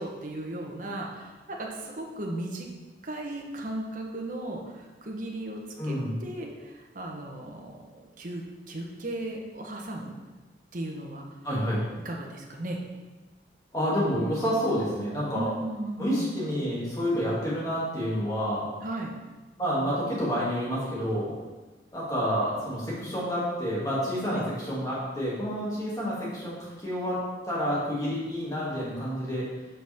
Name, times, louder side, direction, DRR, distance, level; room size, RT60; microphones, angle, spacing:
voice 1, 0.0-2.7 3.0-10.1 10.7-11.2 12.0-12.8 15.3-16.3 18.8-19.2 24.3-24.5, right 1 dB, 50° right, 0 dB, 1.1 m, -36 dB
voice 2, 5.8-6.1 11.4-11.8 13.7-15.5 16.0-18.6 19.6-21.3 21.9-24.4 24.7-29.4, equal, 20° left, -7 dB, 2.6 m, -29 dB
8.2 x 5.9 x 3.6 m, 1.2 s
head